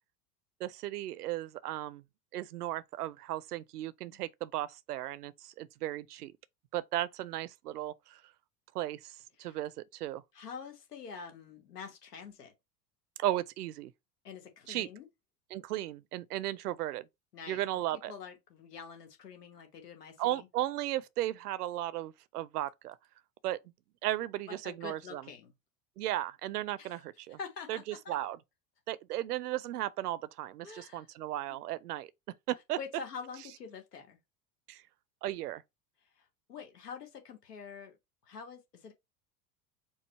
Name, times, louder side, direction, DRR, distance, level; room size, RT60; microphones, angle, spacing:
voice 1, 0.6-2.0 2.3-6.3 6.7-8.2 8.7-10.2 13.2-13.9 14.7-14.9 15.5-17.1 17.5-18.1 20.2-23.0 23.4-23.6 24.0-25.2 26.0-27.4 27.7-28.4 28.9-32.1 32.5-32.8 34.7-34.8 35.2-35.6, right 14 dB, 75° right, 0.6 m, -35 dB
voice 2, 10.3-12.5 14.2-15.1 17.3-17.6 17.9-20.5 24.5-25.5 26.8-27.0 27.3-28.2 30.6-31.1 32.8-34.2 36.1-38.0 38.2-38.9, left 6 dB, 80° left, 1.4 m, -46 dB
4.6 x 2.2 x 4.2 m
figure-of-eight pair, 75°, 47 cm